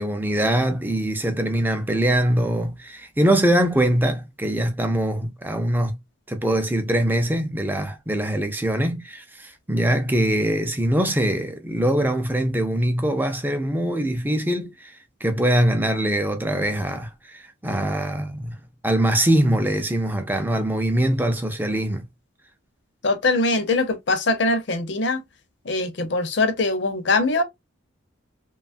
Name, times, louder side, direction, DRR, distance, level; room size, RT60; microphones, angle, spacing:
voice 1, 0.0-6.0 6.3-22.1, right 1 dB, 10° right, 0.4 m, -23 dB
voice 2, 23.0-25.2 25.6-27.4, left 2 dB, 60° left, 0.6 m, -22 dB
3.0 x 2.3 x 2.5 m
head